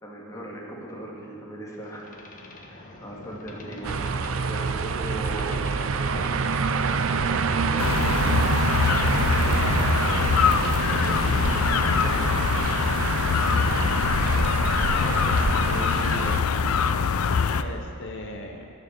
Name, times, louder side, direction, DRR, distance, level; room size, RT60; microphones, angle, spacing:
voice 1, 0.0-2.1 2.7-6.6 6.9-8.5 9.0-12.3, right 1 dB, 15° left, -4 dB, 2.0 m, -38 dB
Boat Water vehicle, 1.8-12.4, left 1 dB, 40° left, 1.3 m, -43 dB
sound 1, 3.8-16.4, right 5 dB, 65° right, 0.5 m, -26 dB
sound 2, 7.8-17.6, left 6 dB, 85° left, 0.5 m, -23 dB
voice 2, 14.5-16.5 17.5-18.7, left 2 dB, 60° left, 2 dB, 0.8 m, -37 dB
14.5 x 6.7 x 6.9 m, 2.7 s
head